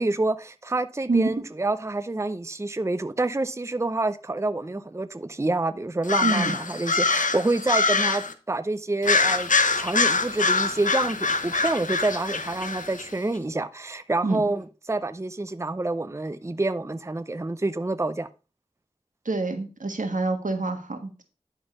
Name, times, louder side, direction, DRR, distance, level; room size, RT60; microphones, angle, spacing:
voice 1, 0.0-9.5 9.8-18.3, right 2 dB, 20° right, 0.5 m, -27 dB
sound 1, 6.0-8.3 9.0-13.1, left 4 dB, 80° left, 0.9 m, -24 dB
voice 2, 6.2-6.6 14.2-14.4 19.2-21.2, right 3 dB, 85° right, 1.5 m, -26 dB
11.0 x 3.8 x 5.3 m
wide cardioid pair, 45°, 13 cm